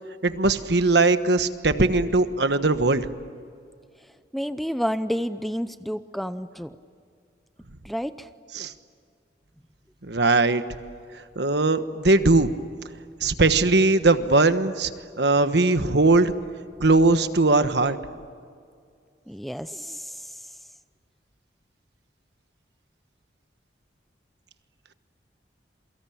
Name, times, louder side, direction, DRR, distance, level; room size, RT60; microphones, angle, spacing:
voice 1, 0.2-3.1 8.5-8.7 10.0-10.6 11.4-12.5 13.2-14.9 15.2-16.3 16.8-18.0, right 3 dB, 65° right, 10 dB, 1.3 m, -20 dB
voice 2, 4.3-6.7 7.8-8.3 19.3-20.1, equal, ahead, 11 dB, 0.6 m, -30 dB
28.0 x 23.5 x 8.7 m, 2.2 s
head